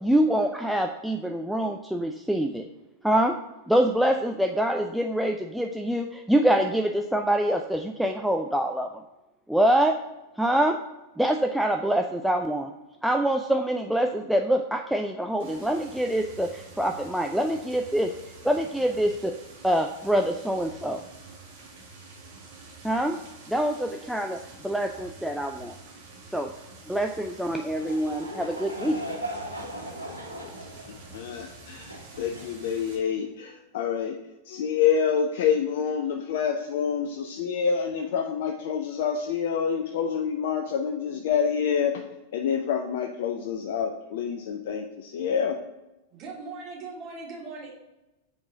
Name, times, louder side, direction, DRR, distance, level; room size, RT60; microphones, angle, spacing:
voice 1, 0.0-2.6 3.0-3.3 3.7-8.9 9.5-10.0 10.4-10.8 11.2-12.7 13.0-18.1 18.4-19.3 19.6-21.0 22.8-23.2 23.5-25.8 26.3-26.5 26.9-29.0, right 1 dB, ahead, 3 dB, 0.4 m, -25 dB
sound 1, 15.4-33.0, right 3 dB, 55° right, 1.7 m, -48 dB
Laughter / Crowd, 27.3-33.0, equal, 90° left, 1.5 m, -39 dB
voice 2, 31.1-34.2 34.5-42.0 42.3-45.6, left 7 dB, 55° left, 4 dB, 0.5 m, -27 dB
voice 3, 46.1-47.7, right 3 dB, 35° right, -3 dB, 2.4 m, -39 dB
7.3 x 4.9 x 3.8 m, 0.99 s
figure-of-eight pair, 90°, 0 cm